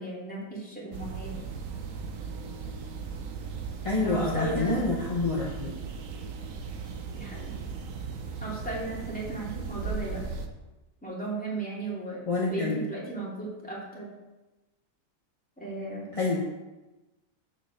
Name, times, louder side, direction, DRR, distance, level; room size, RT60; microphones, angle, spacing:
voice 1, 0.0-1.3 4.0-4.9 7.1-7.5 8.4-10.2 11.0-12.2 12.5-14.1 15.6-16.1, right 2 dB, 5° left, -7 dB, 2.4 m, -35 dB
sound 1, 0.9-10.5, right 5 dB, 60° right, 0.9 m, -37 dB
voice 2, 3.8-5.7 12.2-12.8 16.1-16.4, left 3 dB, 25° left, -5 dB, 0.8 m, -27 dB
6.6 x 4.9 x 6.4 m, 1.1 s
omnidirectional pair, 2.0 m